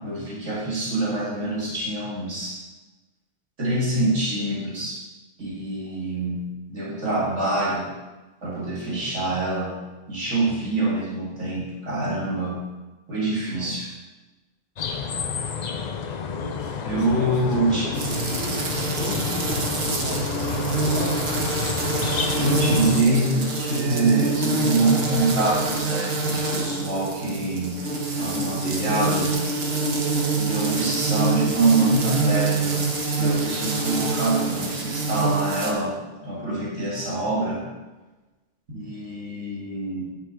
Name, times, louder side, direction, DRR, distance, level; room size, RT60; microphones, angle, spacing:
voice 1, 0.0-2.6 3.6-5.0 5.4-7.9 8.4-9.8 10.1-12.6 13.1-13.9 16.8-17.9 22.3-27.9 28.2-29.3 30.3-36.0 36.2-37.6 38.7-40.0, right 2 dB, 75° right, -5 dB, 2.1 m, -25 dB
voice 2, 13.4-13.7 16.3-21.2, equal, 40° right, -5 dB, 2.2 m, -35 dB
sound 1, 14.8-23.0, left 6 dB, 50° left, 0.5 m, -29 dB
sound 2, 17.9-35.7, right 3 dB, 55° right, 1.4 m, -26 dB
9.2 x 5.8 x 5.0 m, 1.2 s
omnidirectional pair, 1.3 m